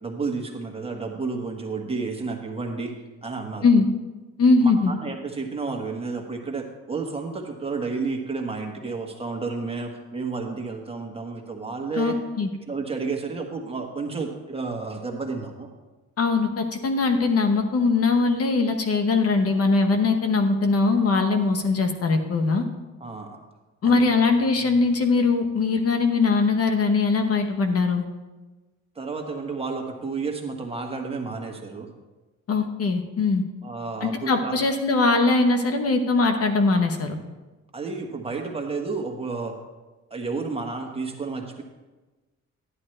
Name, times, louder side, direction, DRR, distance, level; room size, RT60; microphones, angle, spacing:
voice 1, 0.0-2.9 3.2-3.6 4.6-12.2 12.7-15.7 23.0-23.4 23.8-24.1 24.6-24.7 28.9-31.9 33.6-34.6 37.7-39.6 40.1-41.6, right 4 dB, 20° right, 1 dB, 1.4 m, -31 dB
voice 2, 4.4-4.9 12.0-12.5 16.2-22.6 23.8-28.0 32.5-33.4 34.0-37.1, left 3 dB, 55° left, 6 dB, 1.0 m, -21 dB
11.0 x 10.5 x 3.3 m, 1.2 s
cardioid pair, 115°, 29 cm